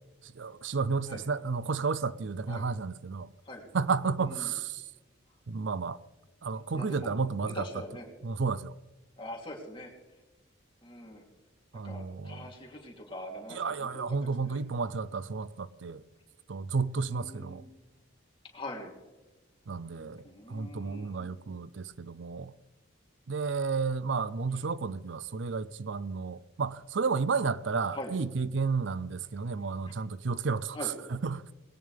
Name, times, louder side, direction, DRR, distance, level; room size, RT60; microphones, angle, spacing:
voice 1, 0.2-3.3 3.7-4.8 5.5-6.0 6.4-7.6 8.2-8.7 11.7-12.4 13.5-16.0 16.5-17.6 19.7-22.5 23.3-30.9 31.2-31.4, right 4 dB, 75° right, 0.5 m, -32 dB
voice 2, 4.2-4.5 6.7-7.1 7.5-8.1 9.2-9.9 10.8-11.2 11.8-14.6 17.1-17.7 18.5-19.0 19.8-20.0 20.2-21.3 27.9-28.1 30.7-30.9, left 1 dB, 25° left, 3.2 m, -43 dB
20.5 x 17.0 x 3.5 m
head